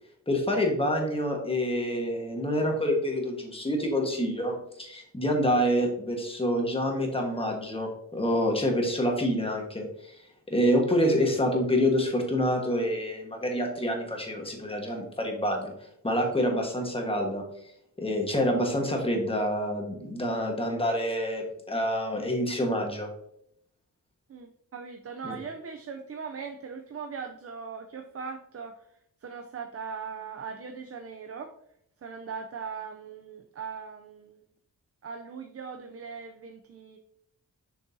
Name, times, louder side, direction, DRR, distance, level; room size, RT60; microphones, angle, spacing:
voice 1, 0.3-10.2 10.5-15.7 16.0-17.4 18.0-23.1 25.2-25.4, equal, 15° left, 1 dB, 1.4 m, -27 dB
voice 2, 24.3-28.9 29.2-31.5 32.0-34.4 35.0-37.0, right 6 dB, 45° right, 4 dB, 0.5 m, -39 dB
6.7 x 6.3 x 2.7 m, 0.72 s
wide cardioid pair, 140°, 34 cm